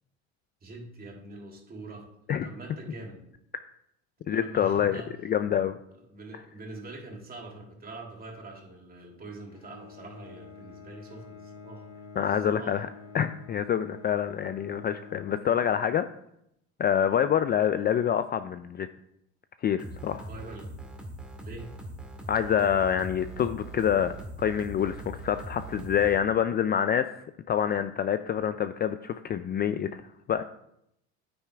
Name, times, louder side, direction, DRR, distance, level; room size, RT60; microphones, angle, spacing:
voice 1, 0.6-2.0 2.4-3.2 4.3-5.1 6.1-12.0 12.5-12.8 17.0-17.2 20.3-20.7 21.4-21.7, right 2 dB, 25° right, -1 dB, 3.1 m, -44 dB
voice 2, 4.3-5.8 6.3-6.4 12.2-12.9 13.1-16.1 16.8-18.9 19.6-20.3 22.3-24.1 24.4-27.1 27.5-30.0 30.3-30.4, left 9 dB, 30° left, 11 dB, 0.4 m, -26 dB
Bowed string instrument, 9.4-16.1, left 5 dB, 75° left, 2.7 m, -48 dB
sound 1, 19.8-26.2, right 1 dB, 5° right, 1.9 m, -41 dB
9.7 x 8.8 x 3.4 m, 0.78 s
supercardioid pair, 100°, 34 cm